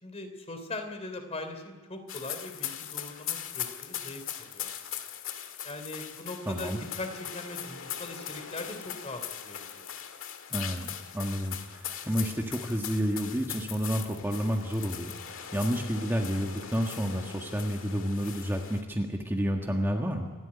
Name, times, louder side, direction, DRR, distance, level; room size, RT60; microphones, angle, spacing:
voice 1, 0.0-4.9 5.6-6.7 7.0-9.9, left 2 dB, 30° left, 7 dB, 3.3 m, -40 dB
sound 1, 2.1-18.8, left 9 dB, 70° left, 1.8 m, -40 dB
voice 2, 6.4-6.8 10.5-20.3, equal, 10° right, 1 dB, 1.6 m, -30 dB
27.5 x 12.5 x 9.9 m, 1.3 s
head